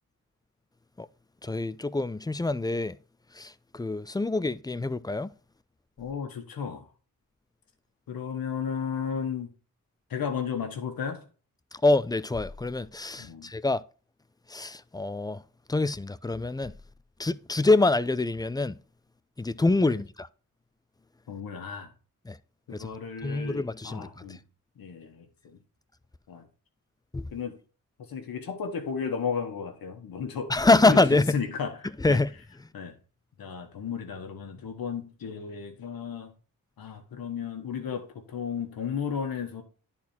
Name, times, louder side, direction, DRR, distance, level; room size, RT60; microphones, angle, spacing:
voice 1, 1.4-3.0 3.4-5.3 11.7-13.8 14.5-15.4 15.7-16.7 17.2-18.8 19.4-20.3 22.3-22.4 22.7-22.9 23.2-24.4 27.1-27.3 30.5-31.4 32.0-32.3, left 2 dB, 10° left, 0.5 m, -25 dB
voice 2, 6.0-6.8 8.1-9.5 10.1-11.2 13.2-13.5 19.8-20.0 21.3-21.9 22.7-24.4 24.8-25.6 26.3-26.5 27.3-27.6 28.0-32.2 32.7-32.9 33.4-36.3 36.8-39.6, left 6 dB, 80° left, 1.4 m, -34 dB
10.0 x 4.3 x 4.3 m
cardioid pair, 50°, 35 cm